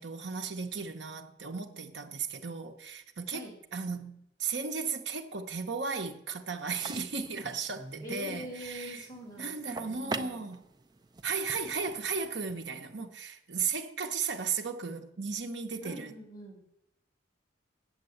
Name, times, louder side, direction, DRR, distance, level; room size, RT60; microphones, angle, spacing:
voice 1, 0.0-3.5 3.7-9.0 9.4-10.6 11.2-16.1, right 5 dB, 65° right, 0.9 m, -35 dB
sound 1, 6.6-12.5, right 3 dB, 20° right, 0.5 m, -44 dB
voice 2, 8.0-10.4 15.8-16.6, equal, 20° left, 3.8 m, -44 dB
8.0 x 7.5 x 7.9 m
head